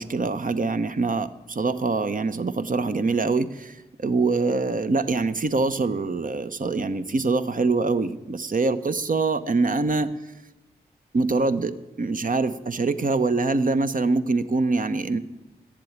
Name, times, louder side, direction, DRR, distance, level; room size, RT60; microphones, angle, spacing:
voice 1, 0.0-10.1 11.1-15.2, right 3 dB, 50° right, 11 dB, 0.8 m, -24 dB
10.0 x 7.6 x 9.5 m, 1.0 s
cardioid pair, 40°, 18 cm